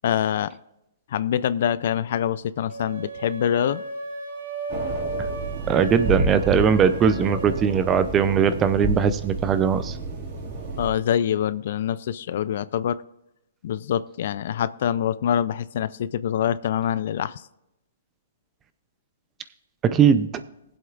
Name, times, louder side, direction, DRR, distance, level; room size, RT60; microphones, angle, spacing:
voice 1, 0.0-0.5 1.1-3.8 10.8-13.0 13.6-17.4, left 9 dB, 55° left, 17 dB, 0.4 m, -25 dB
sound 1, 2.7-7.6, right 2 dB, 80° right, 3.3 m, -35 dB
sound 2, 4.7-10.9, right 3 dB, 40° right, 2.1 m, -30 dB
voice 2, 5.7-10.0 19.8-20.3, right 7 dB, 20° right, 12 dB, 0.6 m, -20 dB
21.0 x 7.9 x 2.5 m, 0.87 s
hypercardioid pair, 150°, 0 cm